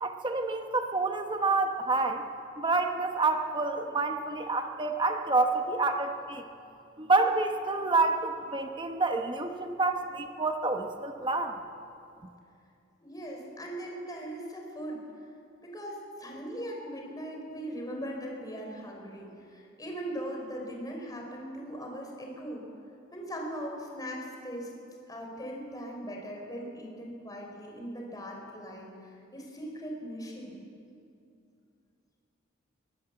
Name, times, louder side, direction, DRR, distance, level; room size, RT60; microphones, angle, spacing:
voice 1, 0.0-2.2 2.6-6.4 7.0-11.5, right 3 dB, 25° right, 5 dB, 1.1 m, -28 dB
voice 2, 13.0-15.0 15.6-22.6 23.1-24.7 25.1-30.6, equal, 20° left, 0 dB, 4.1 m, -39 dB
22.5 x 17.0 x 8.0 m, 2.6 s
head